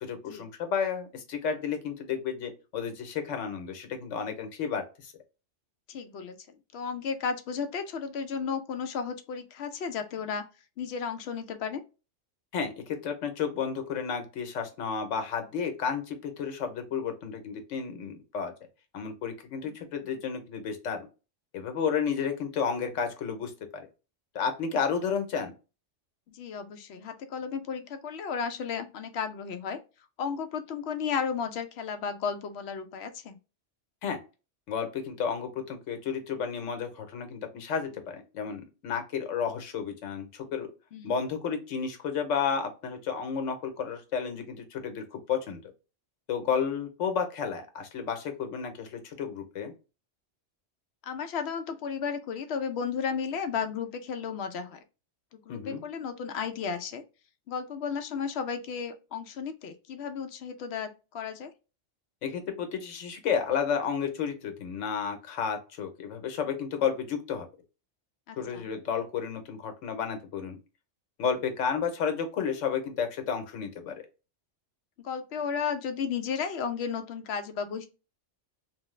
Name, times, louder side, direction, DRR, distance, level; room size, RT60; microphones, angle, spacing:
voice 1, 0.0-5.1 12.5-18.5 18.9-21.1 21.5-23.8 24.3-25.5 34.0-34.2 34.7-40.7 41.0-45.6 46.3-49.7 55.5-55.8 62.2-67.5 68.4-70.6 71.2-74.0, left 6 dB, 85° left, 1.1 m, -32 dB
voice 2, 5.9-6.3 6.7-10.4 10.8-11.8 26.3-29.8 30.2-33.4 40.9-41.1 51.0-54.8 55.5-57.0 57.5-61.5 68.3-68.7 75.0-77.9, left 6 dB, 65° left, 0.7 m, -33 dB
3.0 x 2.0 x 3.0 m
omnidirectional pair, 1.3 m